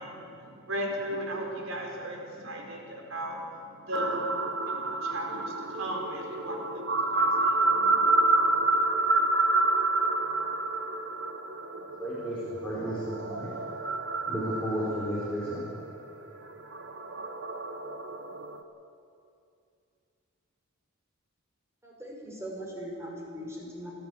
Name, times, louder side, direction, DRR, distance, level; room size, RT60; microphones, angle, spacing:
voice 1, 0.0-8.8, equal, 75° right, 0 dB, 4.4 m, -37 dB
sound 1, 3.9-18.6, right 2 dB, 55° right, 1.3 m, -29 dB
voice 2, 12.0-13.5 14.3-15.6, equal, 5° left, -10 dB, 4.3 m, -33 dB
voice 3, 21.8-23.9, equal, 15° right, -2 dB, 5.2 m, -40 dB
29.0 x 10.5 x 8.5 m, 2.5 s
head